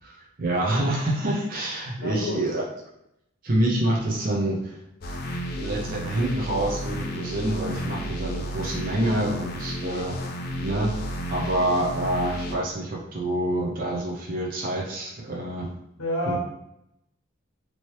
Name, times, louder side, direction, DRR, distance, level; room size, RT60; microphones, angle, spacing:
voice 1, 0.0-2.6 3.4-4.7 5.6-10.1 10.6-10.9 11.3-15.7 16.2-16.3, right 1 dB, 45° right, -4 dB, 0.7 m, -27 dB
voice 2, 2.0-2.4 16.0-16.3, left 1 dB, 80° left, -4 dB, 0.8 m, -28 dB
sound 1, 5.0-12.6, equal, 45° left, 0.5 m, -32 dB
3.1 x 2.8 x 3.1 m, 0.80 s
head